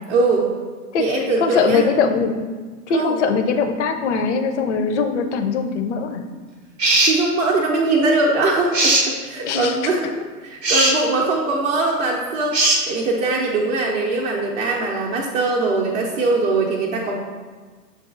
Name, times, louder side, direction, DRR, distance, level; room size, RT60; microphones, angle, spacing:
voice 1, 0.1-0.5 1.0-1.8 2.9-3.2 7.0-10.1 10.4-17.1, right 3 dB, 45° right, -3 dB, 0.6 m, -21 dB
voice 2, 1.4-2.4 2.9-6.2 9.4-9.9, left 5 dB, 50° left, 6 dB, 0.5 m, -21 dB
sound 1, 6.8-7.2 8.7-9.1 10.6-11.0 12.5-12.8, right 2 dB, 90° right, 0.8 m, -17 dB
7.1 x 2.4 x 2.4 m, 1.5 s
figure-of-eight pair, 110°, 49 cm